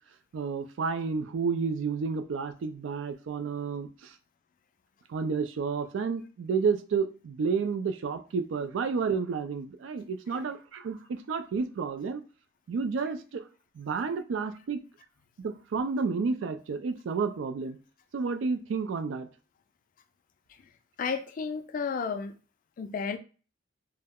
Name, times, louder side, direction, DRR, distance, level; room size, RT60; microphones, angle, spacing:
voice 1, 0.3-4.1 5.1-12.2 12.7-13.4 13.8-14.8 15.4-17.8 18.1-19.3, right 5 dB, 75° right, 0.3 m, -31 dB
voice 2, 21.0-22.4 22.8-23.2, left 5 dB, 45° left, 0.3 m, -32 dB
2.2 x 2.0 x 3.4 m
head